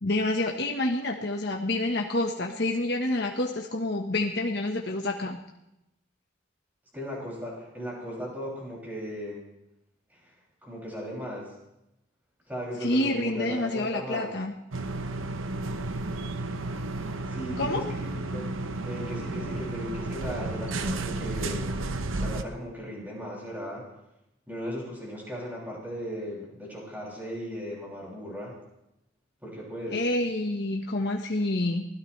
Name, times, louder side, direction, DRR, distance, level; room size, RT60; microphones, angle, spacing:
voice 1, 0.0-5.4 12.8-14.5 17.6-17.8 29.9-31.8, left 2 dB, 55° left, 1 dB, 1.3 m, -28 dB
voice 2, 6.9-9.4 10.1-10.3 10.6-11.5 12.5-14.3 17.3-18.5 18.8-21.7 22.2-23.8 24.5-28.5 29.4-30.0, equal, 10° right, -5 dB, 6.6 m, -37 dB
sound 1, 14.7-22.4, right 2 dB, 80° right, 1.0 m, -32 dB
24.5 x 17.0 x 3.3 m, 0.87 s
head